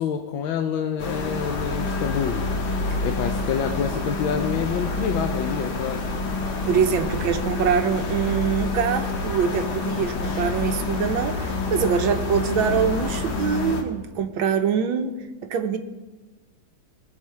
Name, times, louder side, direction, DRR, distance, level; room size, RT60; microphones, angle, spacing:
voice 1, 0.0-2.4 3.0-6.1, left 7 dB, 80° left, 6 dB, 1.5 m, -27 dB
sound 1, 1.0-13.8, left 3 dB, 60° left, 1.8 m, -27 dB
voice 2, 6.6-15.1 15.4-15.8, right 7 dB, 90° right, 7 dB, 1.6 m, -24 dB
19.5 x 7.4 x 4.6 m, 1.2 s
omnidirectional pair, 2.2 m